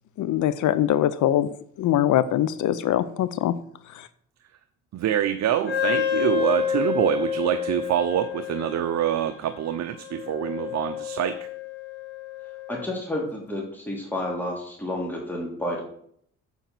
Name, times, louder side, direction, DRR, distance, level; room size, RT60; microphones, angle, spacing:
voice 1, 0.2-3.5 3.9-4.1, left 12 dB, 75° left, 15 dB, 0.7 m, -23 dB
voice 2, 4.9-11.5, right 11 dB, 65° right, 8 dB, 0.8 m, -25 dB
Wind instrument woodwind instrument, 5.7-13.0, left 8 dB, 35° left, 2.9 m, -29 dB
voice 3, 12.7-15.8, left 1 dB, 5° left, -2 dB, 3.0 m, -30 dB
7.9 x 7.1 x 6.0 m, 0.64 s
cardioid pair, 90°, 30 cm